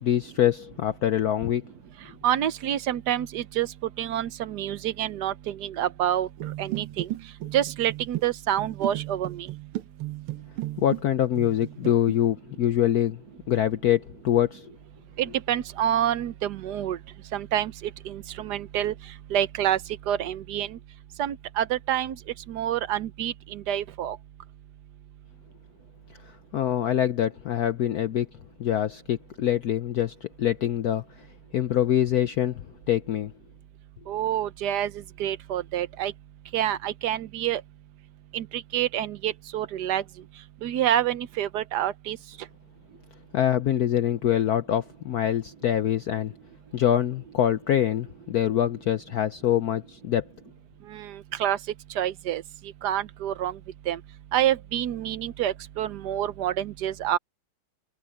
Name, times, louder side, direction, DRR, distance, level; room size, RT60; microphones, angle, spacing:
voice 1, 0.0-1.6 10.8-13.2 13.5-14.7 26.2-28.3 28.6-31.3 31.5-33.3 43.3-46.3 46.7-50.2, left 11 dB, 70° left, 0.9 m, -25 dB
voice 2, 2.2-6.3 6.6-7.1 7.5-9.5 15.2-17.0 17.3-18.9 19.3-19.8 20.1-20.8 21.2-22.2 22.5-24.2 34.1-36.1 36.5-37.6 38.3-40.0 40.6-42.2 50.9-51.6 51.9-52.4 52.8-53.6 53.9-54.0 54.3-57.2, right 11 dB, 65° right, 1.1 m, -27 dB
sound 1, 6.4-11.1 11.4-12.2, right 17 dB, 85° right, 1.8 m, -35 dB
omnidirectional pair, 2.3 m